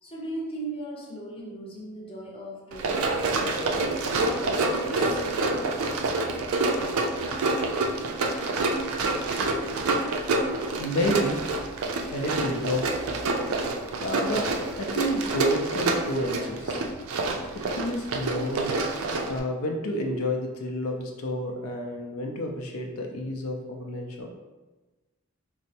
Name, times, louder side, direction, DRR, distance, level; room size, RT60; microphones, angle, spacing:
voice 1, 0.0-3.9 4.2-5.2, right 1 dB, 25° left, -3 dB, 0.6 m, -38 dB
Run, 2.7-19.4, right 2 dB, 75° right, 0.4 m, -27 dB
voice 2, 10.8-11.4 12.1-12.9 14.0-14.5 14.8-16.8 17.5-18.7 19.3-24.3, equal, 85° left, 2 dB, 0.5 m, -29 dB
4.3 x 2.0 x 2.7 m, 1.2 s
head